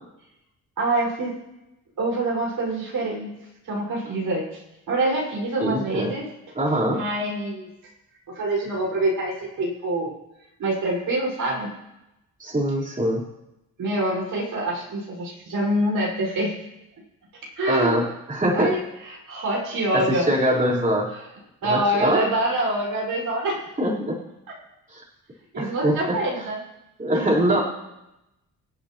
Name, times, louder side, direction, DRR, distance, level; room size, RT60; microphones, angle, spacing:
voice 1, 0.8-1.3 2.0-3.3 3.6-4.6 4.9-6.3 6.9-7.7 8.3-10.1 10.6-11.7 13.8-16.6 17.6-18.0 18.5-18.8 19.1-20.3 21.6-23.7 25.5-26.6 27.1-27.6, right 1 dB, 65° right, -4 dB, 5.4 m, -25 dB
voice 2, 5.6-6.1 6.5-7.0 12.4-13.2 17.7-18.7 19.9-21.1 21.6-22.2 23.8-24.2 24.9-25.0 25.5-26.5 27.0-27.6, equal, 20° right, -5 dB, 4.2 m, -23 dB
24.5 x 8.3 x 3.0 m, 0.93 s
supercardioid pair, 60°, 36 cm